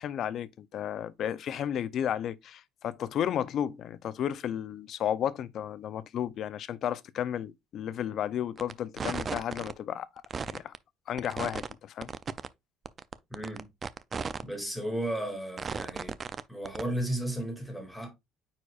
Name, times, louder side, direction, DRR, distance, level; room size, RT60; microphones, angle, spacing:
voice 1, 0.0-10.1 10.5-10.7 11.1-12.1, left 10 dB, 50° left, 0.5 m, -33 dB
sound 1, 8.6-8.7 9.0-9.7 10.2-10.8 11.2-11.7 12.0-12.5 12.9-14.4 14.8-14.9 15.6-16.4 16.7-16.8, right 5 dB, 25° right, 0.4 m, -35 dB
voice 2, 13.3-13.7 14.4-16.2 16.5-18.1, right 1 dB, ahead, 2.3 m, -34 dB
9.2 x 4.4 x 2.4 m
cardioid pair, 140°, 0 cm